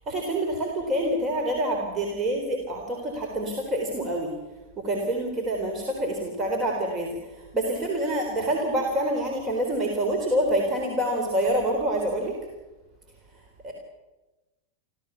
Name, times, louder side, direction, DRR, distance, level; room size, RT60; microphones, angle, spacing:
voice 1, 0.1-4.3 4.8-12.3 13.3-13.7, right 1 dB, 25° right, 1 dB, 3.8 m, -27 dB
28.0 x 14.0 x 7.1 m, 1.1 s
figure-of-eight pair, 90°, 0 cm